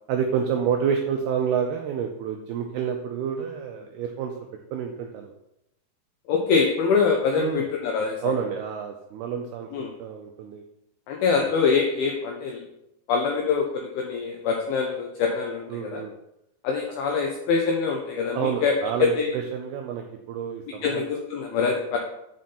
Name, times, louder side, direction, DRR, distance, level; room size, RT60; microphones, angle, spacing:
voice 1, 0.1-4.3 4.7-5.3 7.4-7.7 8.2-10.6 11.4-11.5 15.7-16.1 18.3-21.1, right 7 dB, 90° right, 3 dB, 2.2 m, -29 dB
voice 2, 6.3-8.3 9.7-9.9 11.1-12.6 13.1-16.0 16.6-18.7 19.0-19.3 20.8-22.0, left 5 dB, 85° left, 2 dB, 2.1 m, -24 dB
9.1 x 5.1 x 4.2 m, 0.85 s
omnidirectional pair, 5.3 m